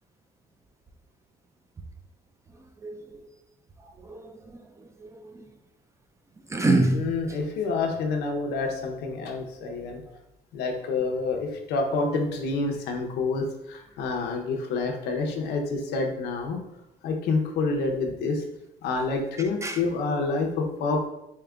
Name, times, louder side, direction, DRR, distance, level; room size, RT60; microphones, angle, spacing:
voice 1, 2.8-3.2 4.0-4.6 5.0-5.3 6.5-7.4 19.6-19.8, right 2 dB, 15° right, 5 dB, 0.4 m, -26 dB
voice 2, 6.9-10.0 10.5-16.6 17.0-18.4 18.8-21.1, left 3 dB, 80° left, 2 dB, 0.7 m, -28 dB
4.8 x 2.9 x 2.3 m, 0.90 s
cardioid pair, 110°, 17 cm